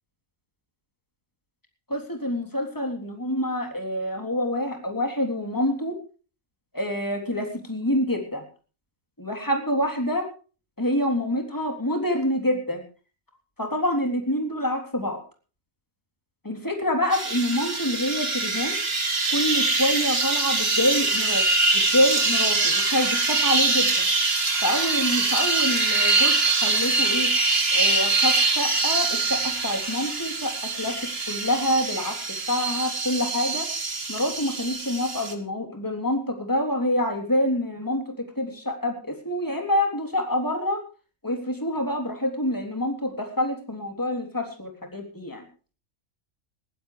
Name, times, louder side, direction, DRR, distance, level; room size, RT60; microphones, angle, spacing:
voice 1, 1.9-6.0 6.7-8.4 9.2-10.3 10.8-12.8 13.6-15.2 16.4-18.8 19.3-21.4 21.7-24.0 24.6-27.3 27.7-31.0 31.3-33.7 34.1-38.0 38.4-40.8 41.2-45.5, left 1 dB, 15° left, 3 dB, 3.5 m, -26 dB
sound 1, 17.1-35.3, right 3 dB, 45° right, 2.2 m, -24 dB
21.0 x 15.5 x 3.3 m, 0.37 s
omnidirectional pair, 1.4 m